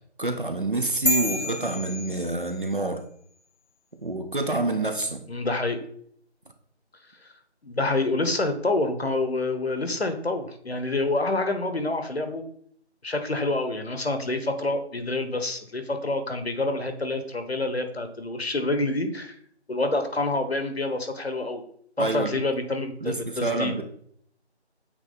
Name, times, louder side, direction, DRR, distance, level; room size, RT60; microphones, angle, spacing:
voice 1, 0.2-3.1 4.0-5.2 22.0-22.4 23.0-23.8, right 2 dB, 50° right, 7 dB, 0.7 m, -27 dB
sound 1, 1.1-2.8, left 1 dB, 85° left, 1.3 m, -29 dB
voice 2, 5.3-5.8 7.6-12.4 13.0-19.3 19.7-21.6 22.0-23.7, left 2 dB, 65° left, 7 dB, 1.0 m, -27 dB
8.2 x 3.1 x 3.9 m, 0.64 s
figure-of-eight pair, 175°, 34 cm